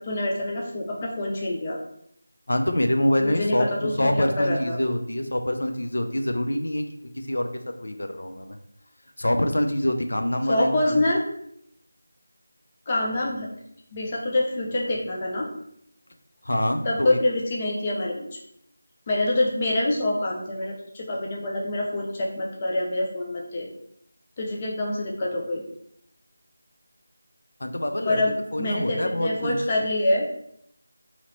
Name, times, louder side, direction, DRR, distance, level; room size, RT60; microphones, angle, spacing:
voice 1, 0.0-1.8 3.2-4.8 10.5-11.2 12.9-13.5 13.9-15.5 16.8-18.3 19.1-23.7 24.4-25.6 28.1-30.3, left 1 dB, 20° left, -2 dB, 0.5 m, -26 dB
voice 2, 2.5-3.7 4.0-7.5 7.8-8.6 9.2-11.0 16.4-17.2 27.6-28.2 28.5-29.6, left 1 dB, 85° left, 6 dB, 0.5 m, -25 dB
2.9 x 2.9 x 4.0 m, 0.72 s
figure-of-eight pair, 175°, 0 cm